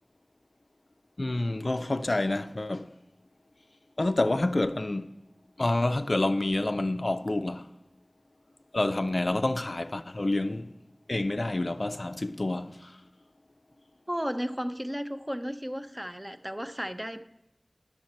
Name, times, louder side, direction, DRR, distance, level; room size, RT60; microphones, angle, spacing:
voice 1, 1.2-2.9 4.0-5.1 5.6-7.7 8.7-10.7 11.1-12.8, left 2 dB, 65° left, 0.3 m, -28 dB
voice 2, 14.1-17.2, equal, 15° right, 0.5 m, -34 dB
10.5 x 6.6 x 4.2 m
wide cardioid pair, 45°, 0 cm